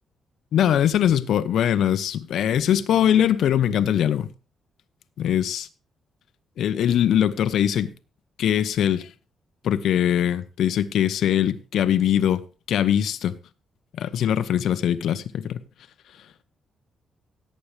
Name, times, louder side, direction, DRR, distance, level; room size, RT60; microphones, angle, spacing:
voice 1, 0.5-4.3 5.2-5.7 6.6-7.9 8.4-9.1 9.6-13.3 14.0-15.6, left 10 dB, 75° left, 0.8 m, -22 dB
17.0 x 8.6 x 3.3 m
cardioid pair, 140°, 0 cm